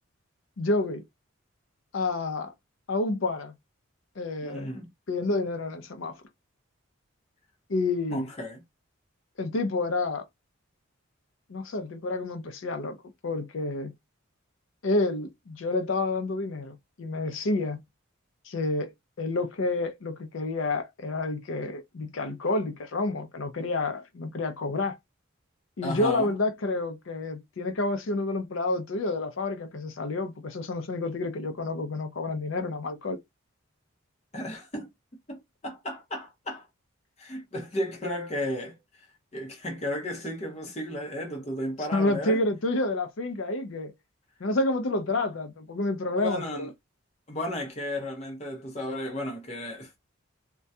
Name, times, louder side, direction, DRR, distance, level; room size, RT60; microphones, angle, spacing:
voice 1, 0.6-1.0 1.9-2.5 2.9-3.5 4.2-4.7 5.1-6.2 7.7-8.3 9.4-10.2 11.5-13.0 13.2-13.9 14.8-17.8 18.5-18.9 19.2-25.0 25.8-33.2 41.9-43.9 44.4-46.7, left 2 dB, 65° left, 0.5 m, -29 dB
voice 2, 4.4-4.9 8.1-8.6 25.8-26.3 34.3-34.9 35.3-36.6 37.2-38.8 39.3-42.4 46.2-46.7 47.3-50.0, left 1 dB, 30° left, 0.7 m, -34 dB
2.2 x 2.2 x 2.6 m
head